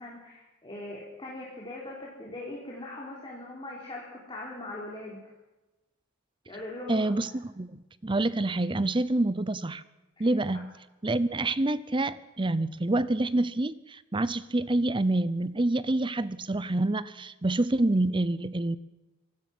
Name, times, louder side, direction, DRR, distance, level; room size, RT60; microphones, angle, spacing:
voice 1, 0.0-5.2 6.5-7.1 10.2-10.6, left 2 dB, 25° left, -3 dB, 3.9 m, -41 dB
voice 2, 6.9-7.7 8.0-9.8 10.2-10.7 11.0-18.8, right 2 dB, 25° right, 16 dB, 0.7 m, -27 dB
25.0 x 17.5 x 6.2 m, 1.1 s
head